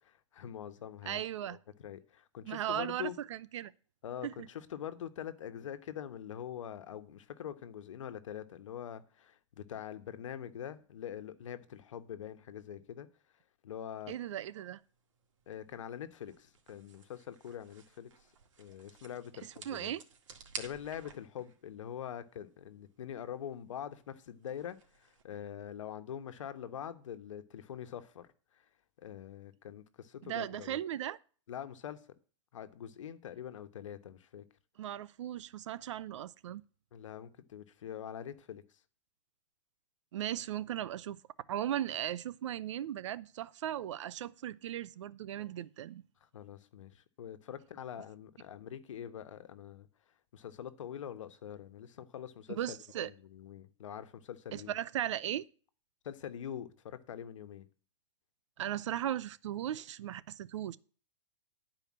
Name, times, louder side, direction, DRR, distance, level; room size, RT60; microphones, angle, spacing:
voice 1, 0.0-1.2 1.5-3.2 4.0-13.1 13.6-14.2 15.5-18.1 18.6-20.0 20.6-28.3 28.5-28.6 29.0-30.8 31.5-32.0 32.5-34.4 36.9-38.6 46.3-49.9 50.3-54.7 56.0-57.7, left 9 dB, 90° left, 1.2 m, -44 dB
voice 2, 1.1-1.6 2.5-3.7 4.2-4.5 14.1-14.8 19.4-20.0 30.2-31.2 34.8-36.6 40.1-41.2 41.5-46.0 52.5-53.1 54.5-55.5 58.6-60.8, right 11 dB, 75° right, 0.7 m, -37 dB
sound 1, 14.0-25.2, right 6 dB, 90° right, 2.0 m, -54 dB
11.0 x 4.9 x 7.4 m
supercardioid pair, 160°, 16 cm